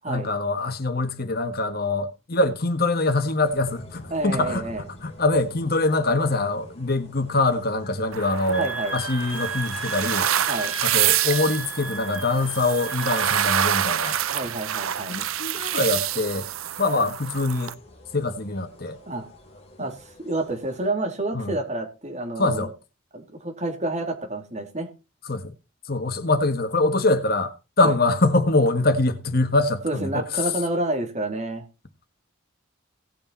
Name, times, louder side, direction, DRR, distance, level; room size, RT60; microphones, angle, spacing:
voice 1, 0.1-4.7 5.0-10.3 10.8-14.2 15.1-16.5 16.8-17.7 18.1-19.0 21.3-21.5 22.4-22.7 25.2-25.5 25.9-30.5, left 2 dB, 50° left, 1.6 m, -24 dB
sound 1, 3.4-20.9, left 1 dB, 30° left, 3.3 m, -49 dB
voice 2, 4.1-4.8 8.6-9.0 10.5-10.7 14.3-15.1 19.1-19.3 19.8-22.7 23.1-24.9 27.8-27.9 29.8-31.6, right 2 dB, 35° right, 3.0 m, -29 dB
sound 2, 8.1-17.7, right 11 dB, 85° right, 0.6 m, -27 dB
Wind instrument woodwind instrument, 8.5-13.8, right 2 dB, 5° right, 2.0 m, -35 dB
17.5 x 6.9 x 4.1 m
head